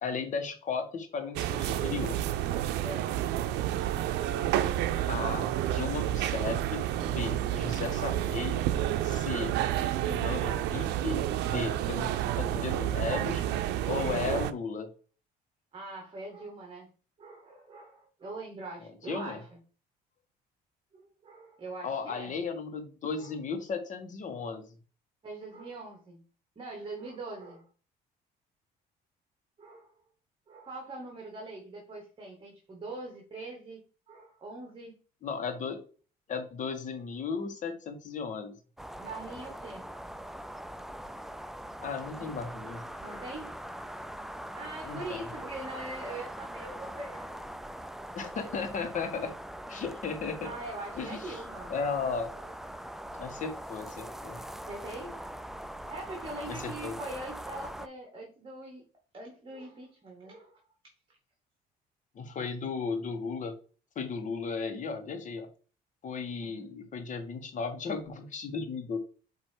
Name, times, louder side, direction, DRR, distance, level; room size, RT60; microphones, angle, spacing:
voice 1, 0.0-2.2 5.1-8.6 9.0-9.5 10.0-13.4 13.8-14.9 19.1-19.4 21.8-24.6 35.2-35.8 36.3-38.5 41.8-42.8 44.8-45.3 48.1-49.3 49.7-50.5 50.9-51.4 51.7-52.3 53.2-54.4 56.5-57.0 62.1-63.5 63.9-65.5 66.0-69.0, left 5 dB, 50° left, 6 dB, 1.5 m, -35 dB
voice 2, 1.2-1.5 2.8-3.1 15.7-16.9 17.2-19.5 20.9-22.3 23.2-23.3 25.2-26.2 26.6-27.7 29.6-29.9 30.5-33.8 34.1-35.0 39.0-39.9 42.1-42.4 42.6-43.6 44.5-47.4 50.4-51.7 52.1-52.5 54.7-55.2 55.8-58.8 59.1-60.6 66.4-66.6, right 2 dB, 30° right, 0 dB, 2.0 m, -43 dB
sound 1, 1.4-14.5, right 12 dB, 85° right, 0.6 m, -30 dB
sound 2, 38.8-57.9, equal, ahead, 0.4 m, -42 dB
8.0 x 3.0 x 4.6 m, 0.38 s
cardioid pair, 110°, 17 cm